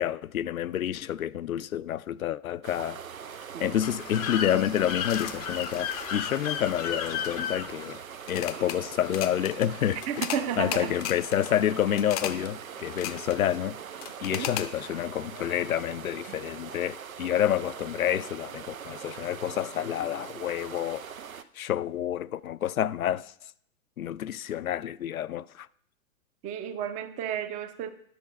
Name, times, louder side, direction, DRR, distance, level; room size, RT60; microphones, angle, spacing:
voice 1, 0.0-3.0 3.6-8.0 8.3-10.0 10.6-13.8 14.2-21.1 21.6-23.3 24.0-25.7, left 11 dB, 85° left, 0.5 m, -29 dB
sound 1, 2.6-21.4, right 7 dB, 85° right, 0.7 m, -42 dB
sound 2, 3.8-8.8 9.0-9.7 10.0-10.4 10.7-11.5 12.0-12.5 12.8-13.4 14.0-14.7, left 10 dB, 30° left, 0.5 m, -34 dB
voice 2, 10.1-11.0 14.3-14.6 26.4-27.9, right 8 dB, 20° right, 0.6 m, -32 dB
10.5 x 6.5 x 5.2 m
figure-of-eight pair, 120°, 41 cm